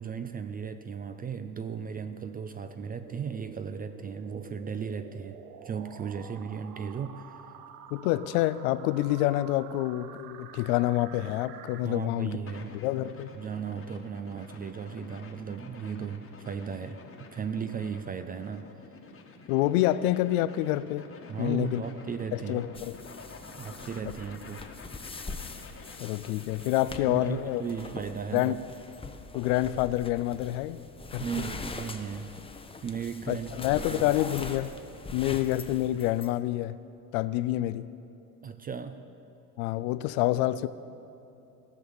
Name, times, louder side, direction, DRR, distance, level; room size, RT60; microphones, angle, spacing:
voice 1, 0.0-7.4 11.8-12.8 13.4-18.7 21.3-22.6 23.6-24.6 27.1-28.6 31.2-32.4 32.8-34.1 38.4-39.0, right 6 dB, 20° right, 10 dB, 0.3 m, -36 dB
sound 1, 3.0-11.8, right 9 dB, 80° right, 0.7 m, -48 dB
voice 2, 7.9-12.4 12.8-13.3 19.5-21.1 21.4-21.8 22.3-23.0 26.0-27.6 28.3-28.6 29.3-30.8 31.1-31.2 33.3-34.7 35.1-36.8 37.1-37.9 39.6-40.7, left 15 dB, 65° left, 15 dB, 0.6 m, -27 dB
sound 2, 12.5-27.9, left 4 dB, 25° left, 1.3 m, -49 dB
sound 3, 22.7-36.4, left 3 dB, 10° left, 0.7 m, -43 dB
15.5 x 6.4 x 7.0 m, 2.9 s
hypercardioid pair, 70°, 48 cm